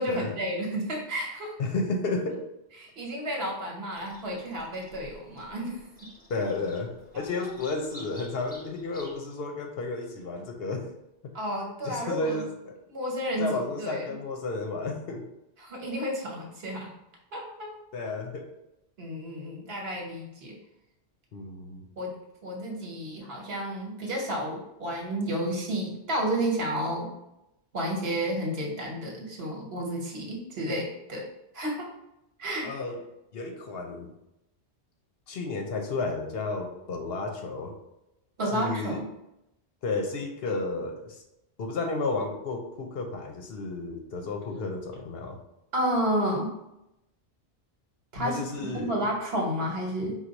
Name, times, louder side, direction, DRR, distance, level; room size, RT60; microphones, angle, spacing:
voice 1, 0.0-1.6 2.8-6.1 11.3-12.4 12.9-14.2 15.6-16.9 17.3-17.7 19.0-20.6 22.0-22.2 22.4-27.1 27.7-31.2 31.5-31.9 32.4-32.8 38.4-39.1 45.7-46.5 48.1-48.4 48.7-50.2, equal, 65° right, -1 dB, 1.2 m, -31 dB
voice 2, 1.6-2.4 6.3-10.9 11.2-11.3 11.8-12.8 13.4-15.2 17.9-18.5 21.3-21.8 32.6-33.0 33.3-34.1 35.3-37.7 38.5-39.0 39.8-41.2 41.6-45.4 48.2-48.9, left 3 dB, 65° left, 3 dB, 0.8 m, -32 dB
Bird vocalization bird call bird song, 3.9-9.2, equal, 10° left, 0.6 m, -51 dB
4.5 x 2.3 x 3.9 m, 0.88 s
omnidirectional pair, 1.1 m